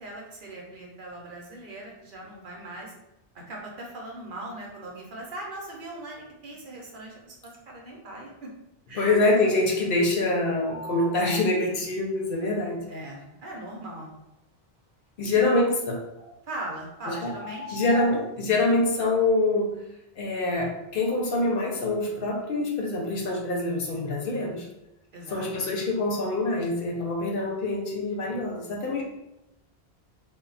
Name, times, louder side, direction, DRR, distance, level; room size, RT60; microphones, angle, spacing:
voice 1, 0.0-2.9 3.3-8.5 8.9-9.1 12.9-14.1 15.3-15.4 16.4-17.8 25.1-25.8, right 1 dB, 60° right, -2 dB, 0.8 m, -40 dB
voice 2, 9.0-12.8 15.2-16.0 17.7-19.7 20.2-24.7 25.3-29.0, left 2 dB, 65° left, 0 dB, 0.8 m, -25 dB
sound 1, 10.6-11.6 16.2-16.3 17.0-18.3, left 1 dB, 5° right, 0.7 m, -40 dB
2.2 x 2.1 x 3.8 m, 0.89 s
omnidirectional pair, 1.0 m